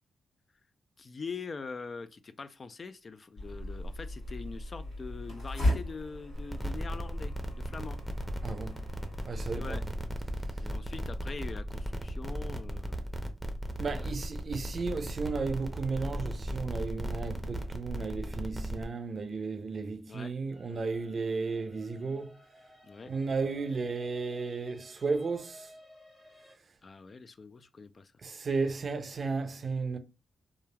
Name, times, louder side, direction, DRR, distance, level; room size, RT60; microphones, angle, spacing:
voice 1, 1.0-8.0 9.5-9.8 10.6-13.3 13.9-14.1 20.1-20.3 22.8-23.1 26.8-28.1, left 4 dB, 50° left, 0.3 m, -43 dB
sound 1, 3.4-9.6, left 1 dB, 80° left, 1.4 m, -36 dB
sound 2, 6.3-18.8, equal, 5° left, 0.7 m, -36 dB
voice 2, 8.4-8.9 9.3-10.3 13.8-22.4 23.1-25.7 28.2-30.0, right 4 dB, 55° right, 0.4 m, -34 dB
sound 3, 20.5-26.5, left 1 dB, 30° left, 1.4 m, -57 dB
3.0 x 2.3 x 2.2 m
supercardioid pair, 45°, 0 cm